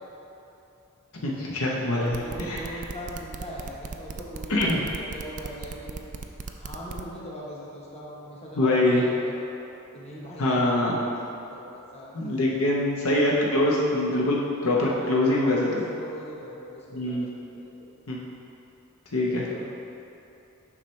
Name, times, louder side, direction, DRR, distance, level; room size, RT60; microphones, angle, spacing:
voice 1, 1.2-2.6 4.5-4.8 8.6-9.0 10.4-10.9 12.1-15.8 16.9-17.3 18.1-18.2 19.1-19.6, left 1 dB, 70° left, -3 dB, 0.8 m, -24 dB
voice 2, 1.9-6.0 6.6-9.5 9.9-12.2 12.5-12.6 14.7-17.3 17.5-17.9 19.5-19.6, equal, 30° left, -5 dB, 1.1 m, -41 dB
sound 1, 2.1-7.0, right 4 dB, 35° right, 0.3 m, -37 dB
7.2 x 5.6 x 3.2 m, 2.8 s
head